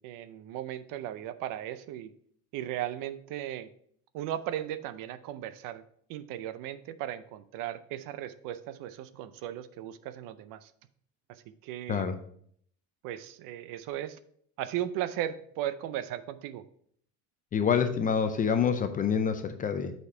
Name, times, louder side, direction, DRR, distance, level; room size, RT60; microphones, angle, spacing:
voice 1, 0.0-2.1 2.5-3.7 4.1-5.8 6.1-10.7 11.3-12.1 13.0-14.2 14.6-16.6, right 12 dB, 60° right, 13 dB, 0.6 m, -36 dB
voice 2, 17.5-19.9, left 7 dB, 25° left, 8 dB, 0.4 m, -27 dB
8.2 x 4.3 x 4.3 m, 0.64 s
cardioid pair, 150°, 38 cm